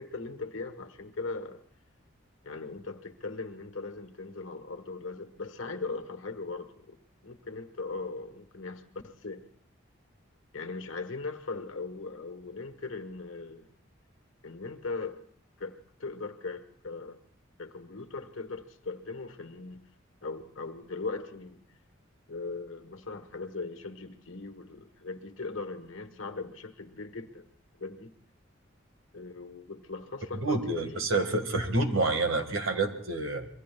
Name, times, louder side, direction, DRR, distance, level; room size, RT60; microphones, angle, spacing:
voice 1, 0.0-1.6 2.4-7.0 7.2-9.4 10.5-13.7 14.4-15.2 15.6-17.2 17.6-19.8 20.2-21.6 22.3-27.5 27.8-28.1 29.1-31.0, left 3 dB, 75° left, 1.3 m, -39 dB
voice 2, 30.3-33.5, right 2 dB, 90° right, 1.8 m, -28 dB
27.5 x 22.5 x 2.3 m
head